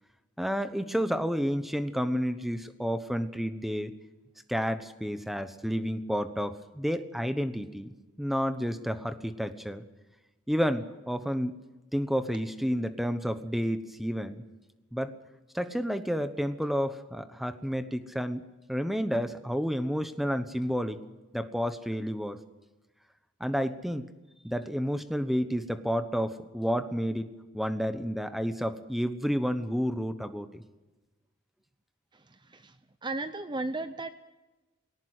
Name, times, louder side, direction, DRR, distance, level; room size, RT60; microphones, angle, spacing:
voice 1, 0.4-3.9 4.5-9.8 10.5-11.6 11.9-14.4 14.9-15.1 15.5-21.0 21.3-22.4 23.4-24.1 24.4-30.6, equal, ahead, 10 dB, 1.1 m, -30 dB
voice 2, 32.1-32.8 33.0-34.1, right 2 dB, 20° right, 10 dB, 0.6 m, -35 dB
19.5 x 17.5 x 7.9 m, 1.1 s
head